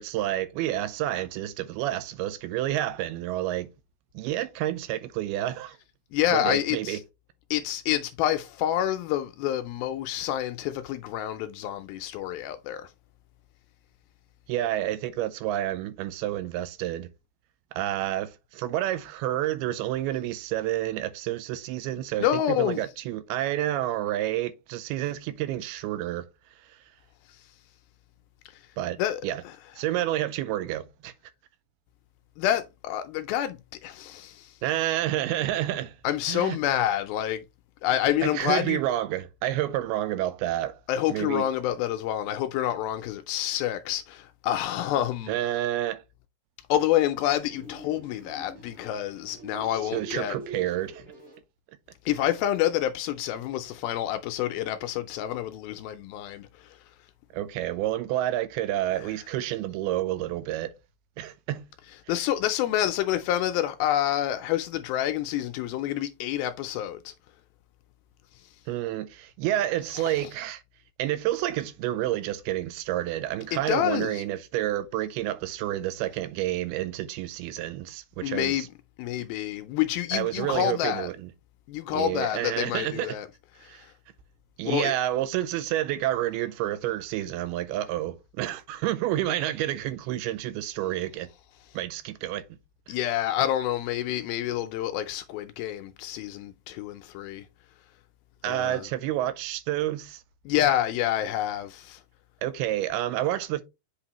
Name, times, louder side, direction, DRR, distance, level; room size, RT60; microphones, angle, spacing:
voice 1, 0.0-3.7 4.1-5.8 6.3-7.0 14.5-17.1 17.7-26.3 26.7-26.8 28.8-29.0 29.2-29.4 29.8-31.1 34.6-36.0 36.3-36.6 38.2-40.8 41.1-41.5 45.3-46.0 49.9-51.0 57.3-60.7 61.2-61.6 68.7-70.6 71.0-78.7 80.1-81.2 81.9-83.2 83.6-83.9 84.6-91.3 91.7-92.4 92.9-93.0 98.4-100.2 102.4-103.6, right 13 dB, 80° right, 2.4 m, -29 dB
voice 2, 6.1-7.0 7.5-12.9 22.2-22.8 27.3-27.5 28.5-28.6 29.0-29.5 32.4-34.6 36.0-37.4 37.8-38.8 40.9-45.4 46.7-50.4 52.1-56.8 59.0-59.1 62.1-67.1 68.3-68.5 70.0-70.3 73.5-74.2 78.2-78.7 79.0-81.1 81.7-83.3 83.6-83.9 84.7-84.9 92.9-97.5 98.5-98.8 100.5-102.0, left 12 dB, 85° left, 2.2 m, -28 dB
sound 1, 47.4-51.4, right 2 dB, 35° right, 1.1 m, -43 dB
7.9 x 4.2 x 2.9 m
omnidirectional pair, 4.6 m